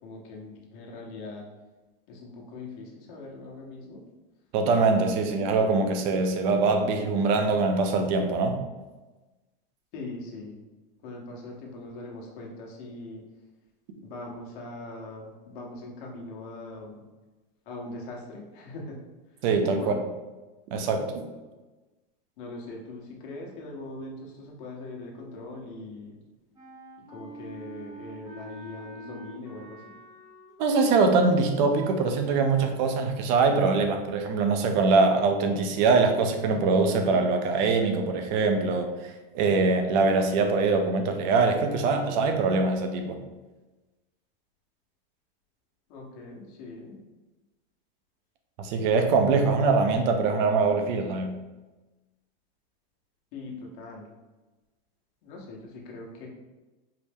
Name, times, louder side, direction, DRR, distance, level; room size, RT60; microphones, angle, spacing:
voice 1, 0.0-1.5 2.1-4.0 5.2-5.3 9.9-10.6 11.0-13.2 14.0-17.0 17.7-19.0 19.7-20.1 22.4-26.2 27.1-29.9 45.9-47.0 49.4-49.5 53.3-54.1 55.2-56.3, left 2 dB, 60° left, -1 dB, 1.1 m, -41 dB
voice 2, 4.5-8.6 19.4-20.0 20.7-21.3 30.6-43.2 48.6-51.3, right 4 dB, 50° right, 5 dB, 0.6 m, -23 dB
Wind instrument woodwind instrument, 26.6-31.4, right 2 dB, 10° right, 0.9 m, -45 dB
4.7 x 2.0 x 3.5 m, 1.2 s
supercardioid pair, 145°, 30 cm